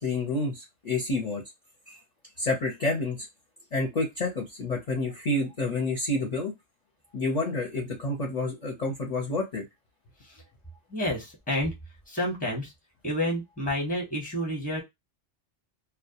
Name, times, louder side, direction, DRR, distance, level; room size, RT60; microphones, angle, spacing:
voice 1, 0.0-1.4 1.9-2.0 2.4-3.3 3.7-6.5 7.1-9.6, left 2 dB, 40° left, 0 dB, 0.6 m, -29 dB
voice 2, 10.9-11.8 12.1-12.7 13.0-14.8, left 1 dB, 10° left, -1 dB, 0.8 m, -29 dB
2.2 x 2.1 x 2.8 m, 0.19 s
omnidirectional pair, 1.3 m